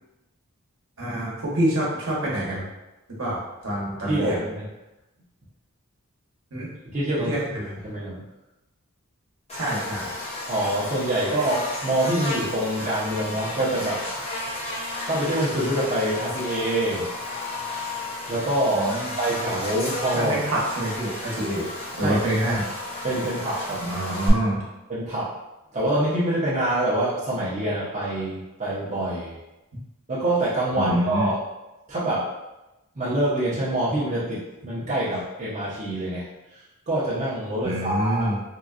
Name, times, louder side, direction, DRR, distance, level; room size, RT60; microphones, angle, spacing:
voice 1, 1.0-2.6 3.2-3.4 3.6-4.4 6.5-6.7 7.3-7.7 9.5-10.1 18.7-19.1 20.1-21.7 22.0-22.6 23.8-24.6 30.7-31.3 37.6-38.4, right 1 dB, 60° right, -6 dB, 1.0 m, -26 dB
voice 2, 4.1-4.7 6.8-7.4 7.8-8.2 10.5-14.0 15.0-17.1 17.7-17.8 18.3-20.3 22.0-22.6 23.0-23.8 24.9-25.3 25.7-29.4 30.1-31.4 31.9-32.3 33.0-36.3 36.9-38.3, right 1 dB, 30° right, -10 dB, 0.7 m, -25 dB
Buzz, 9.5-24.3, left 2 dB, 25° left, 0.6 m, -33 dB
3.7 x 2.2 x 2.4 m, 0.99 s
head